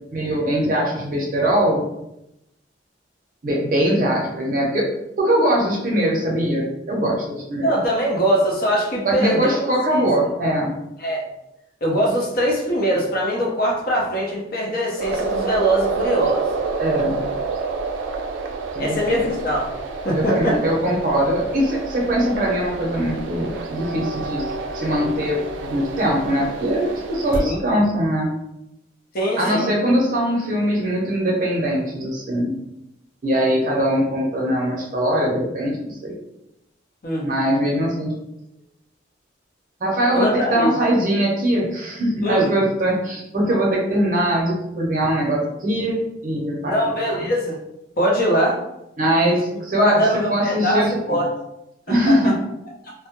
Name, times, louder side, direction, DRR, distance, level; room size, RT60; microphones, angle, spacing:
voice 1, 0.1-1.9 3.4-4.9 5.2-7.7 9.0-10.8 16.8-17.3 18.7-19.2 20.2-28.3 29.4-32.5 33.2-36.1 37.2-38.1 39.8-47.3 49.0-51.3 51.9-52.4, right 1 dB, 45° right, -2 dB, 0.6 m, -21 dB
voice 2, 7.6-9.5 9.9-10.1 11.0-11.2 11.8-16.5 18.8-19.7 20.0-20.6 27.3-27.6 29.1-29.7 37.0-37.4 40.1-40.7 42.2-42.5 46.6-47.6 48.0-48.6 49.5-50.8 51.1-51.3 51.9-52.3 52.8-52.9, equal, 50° left, -2 dB, 0.6 m, -22 dB
sound 1, 14.9-27.4, right 4 dB, 85° right, 0.3 m, -29 dB
2.2 x 2.0 x 2.9 m, 0.86 s
head